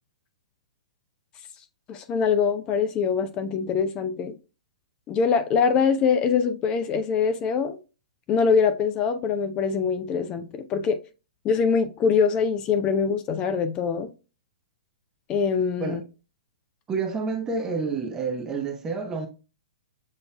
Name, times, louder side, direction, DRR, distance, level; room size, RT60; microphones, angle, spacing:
voice 1, 1.9-4.3 5.1-7.8 8.3-11.0 11.4-14.1 15.3-16.0, left 6 dB, 25° left, 0.4 m, -23 dB
voice 2, 16.9-19.3, right 4 dB, 15° right, 0.6 m, -29 dB
7.4 x 2.5 x 2.2 m
figure-of-eight pair, 115°, 4 cm